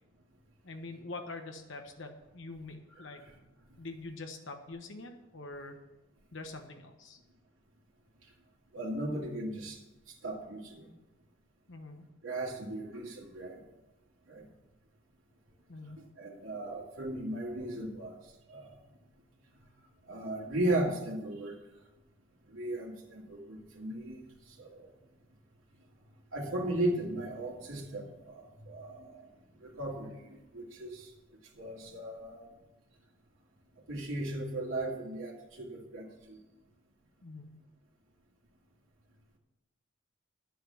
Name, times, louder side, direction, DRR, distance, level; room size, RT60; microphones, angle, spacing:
voice 1, 0.6-3.2 3.8-5.8 6.3-7.2 11.7-12.0 15.7-16.0 37.2-37.6, left 3 dB, 65° left, 4 dB, 1.2 m, -44 dB
voice 2, 3.0-3.3 3.7-3.8 8.7-9.8 10.2-10.9 12.2-13.6 14.3-14.5 16.2-18.2 18.5-18.7 20.1-21.5 22.5-24.2 24.6-24.9 26.3-29.3 29.6-31.1 31.5-32.5 33.9-36.4, right 1 dB, 80° right, -3 dB, 2.4 m, -36 dB
10.0 x 7.7 x 7.1 m, 0.97 s
head